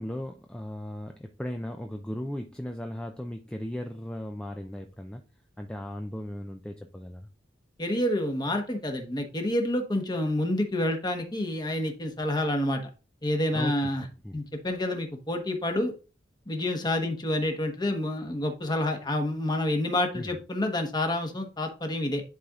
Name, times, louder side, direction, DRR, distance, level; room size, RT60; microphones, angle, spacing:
voice 1, 0.0-5.2 5.6-7.3 13.5-13.7 14.0-14.5 20.1-20.4, left 1 dB, 5° left, 0.4 m, -37 dB
voice 2, 7.8-12.8 13.2-14.0 14.3-15.9 16.5-22.2, left 1 dB, 25° left, 1.1 m, -28 dB
11.0 x 4.2 x 2.4 m
head